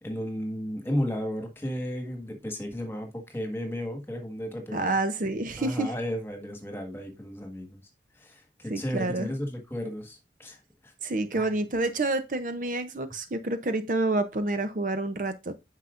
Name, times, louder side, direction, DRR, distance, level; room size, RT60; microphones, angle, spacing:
voice 1, 0.0-4.9 5.6-7.8 8.1-10.6 10.8-10.9 11.3-11.5, equal, 15° left, 1.6 m, -34 dB
voice 2, 4.7-5.9 8.7-9.3 11.0-15.5, right 2 dB, 50° right, 0.6 m, -28 dB
9.0 x 5.7 x 2.5 m
head